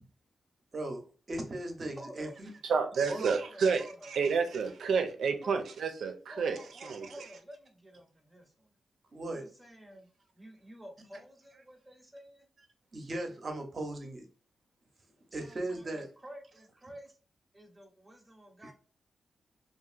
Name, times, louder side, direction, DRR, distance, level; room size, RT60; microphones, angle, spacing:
voice 1, 1.3-2.5 3.1-3.3 9.1-9.4 12.9-14.2 15.3-16.1 18.6-18.7, right 1 dB, 40° right, 0.8 m, -37 dB
voice 2, 1.9-2.3 2.7-4.6 5.4-5.6 6.3-8.7 9.3-10.1 10.4-12.5 15.3-17.1 17.5-18.7, equal, 10° right, 0.8 m, -50 dB
voice 3, 2.6-7.1, right 5 dB, 85° right, 0.5 m, -30 dB
2.8 x 2.6 x 2.4 m
wide cardioid pair, 125°, 0 cm